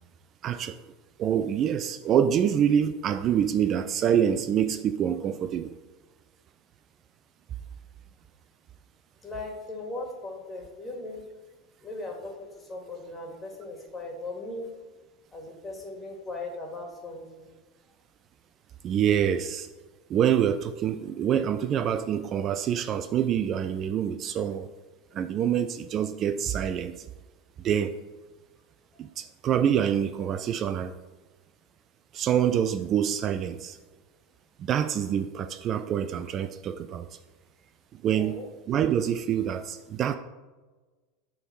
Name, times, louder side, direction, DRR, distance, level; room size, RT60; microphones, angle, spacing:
voice 1, 0.4-0.8 1.2-5.7 18.8-19.7 20.1-24.7 25.1-26.9 27.6-27.9 29.0-30.9 32.1-33.8 34.6-37.1 37.9-38.4 38.7-40.2, right 9 dB, 40° right, 10 dB, 0.4 m, -26 dB
voice 2, 9.2-11.2 11.8-14.7 15.3-17.5 38.1-38.5, left 2 dB, 20° left, 1 dB, 2.0 m, -38 dB
6.9 x 3.7 x 6.1 m, 1.3 s
hypercardioid pair, 95°, 0 cm